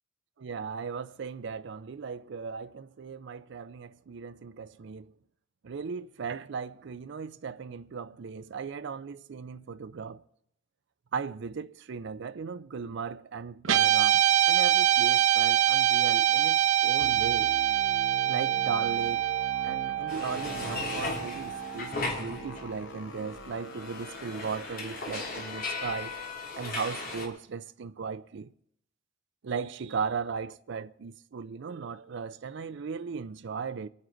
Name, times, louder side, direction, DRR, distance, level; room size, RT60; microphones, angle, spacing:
voice 1, 0.4-5.1 5.6-10.2 11.1-17.5 18.3-19.3 19.6-26.1 26.6-28.5 29.4-33.9, right 5 dB, 65° right, 0.4 m, -37 dB
Guitar, 13.6-22.1, right 11 dB, 85° right, 0.9 m, -25 dB
sound 1, 17.0-26.3, left 2 dB, 65° left, 1.0 m, -45 dB
sound 2, 20.1-22.9 23.2-27.3, left 3 dB, 45° left, 2.8 m, -37 dB
25.0 x 9.4 x 3.9 m
head